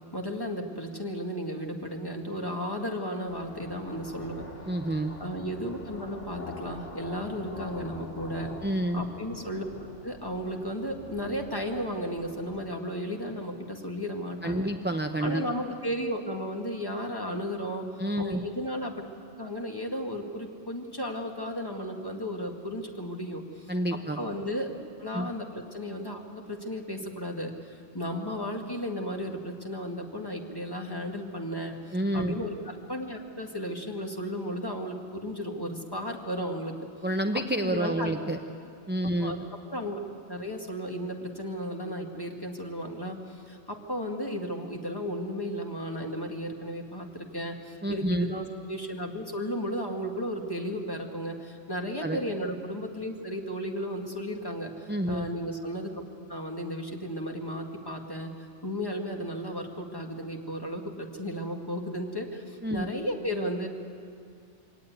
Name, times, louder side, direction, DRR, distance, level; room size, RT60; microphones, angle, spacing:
voice 1, 0.1-4.5 5.2-8.5 8.9-9.7 10.0-14.7 15.2-19.1 19.4-23.7 24.2-24.7 25.0-36.8 37.3-38.1 39.2-39.4 39.7-40.0 40.3-56.0 56.3-58.3 58.6-63.7, equal, 20° left, 2 dB, 2.0 m, -34 dB
sound 1, 3.3-12.6, left 2 dB, 80° left, 2.8 m, -45 dB
voice 2, 4.7-5.1 8.6-9.0 14.4-15.5 18.0-18.4 23.7-24.2 25.1-25.3 31.9-32.3 37.0-38.4 38.9-39.3 47.8-48.3 52.0-52.2 54.9-55.3 62.6-62.9, right 1 dB, 10° right, 5 dB, 0.6 m, -28 dB
23.5 x 18.0 x 9.3 m, 2.3 s
omnidirectional pair, 1.2 m